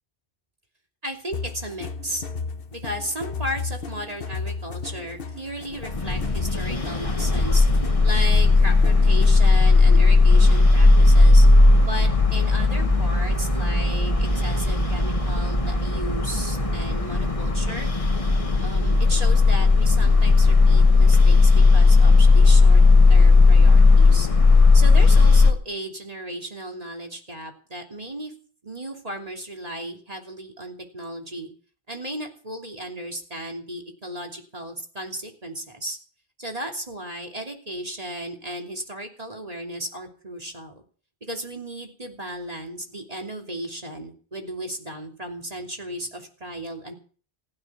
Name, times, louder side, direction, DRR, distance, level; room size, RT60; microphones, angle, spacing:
voice 1, 1.0-2.2 2.7-7.7 8.0-11.5 11.8-17.9 18.6-22.8 23.1-24.3 24.7-28.3 28.6-31.5 31.9-36.0 36.4-40.8 41.2-46.9, right 1 dB, 35° right, 2 dB, 3.0 m, -35 dB
sound 1, 1.3-9.5, left 4 dB, 60° left, 1.3 m, -34 dB
sound 2, 5.9-25.5, left 3 dB, 30° left, 1.6 m, -16 dB
15.5 x 12.5 x 6.0 m, 0.42 s
omnidirectional pair, 1.1 m